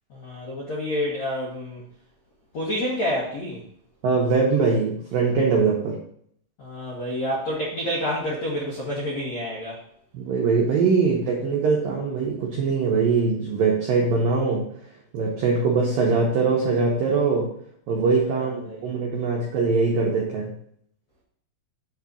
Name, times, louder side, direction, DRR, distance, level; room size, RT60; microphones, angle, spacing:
voice 1, 0.1-1.8 2.5-3.6 6.6-9.8 18.6-18.8, equal, 80° left, -5 dB, 1.5 m, -28 dB
voice 2, 4.0-6.0 10.1-14.7 15.1-17.5 17.9-20.5, right 4 dB, 80° right, -2 dB, 2.0 m, -22 dB
8.0 x 4.1 x 6.2 m, 0.66 s
omnidirectional pair, 5.9 m